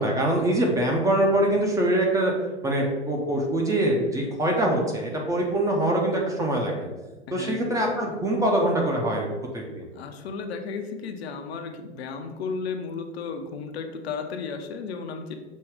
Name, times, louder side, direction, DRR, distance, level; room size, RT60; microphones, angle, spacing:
voice 1, 0.0-2.3 2.6-6.9 7.3-9.3 9.5-9.9, right 1 dB, 10° right, 0 dB, 0.5 m, -24 dB
voice 2, 7.3-7.9 9.9-15.3, left 5 dB, 65° left, 5 dB, 0.6 m, -34 dB
6.1 x 2.3 x 3.5 m, 1.2 s
figure-of-eight pair, 95°, 35 cm